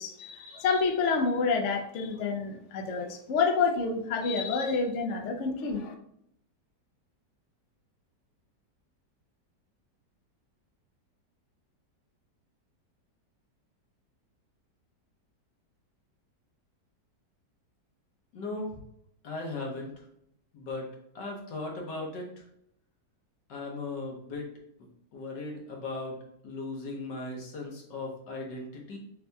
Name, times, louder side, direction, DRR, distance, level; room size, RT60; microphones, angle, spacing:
voice 1, 0.0-5.9, left 4 dB, 65° left, 3 dB, 0.7 m, -28 dB
voice 2, 18.3-18.8 19.2-19.9 20.5-20.9 21.1-22.4 23.5-24.5 25.1-26.2 26.4-29.0, left 2 dB, 80° left, 0 dB, 1.6 m, -37 dB
6.5 x 2.8 x 2.2 m, 0.73 s
omnidirectional pair, 1.9 m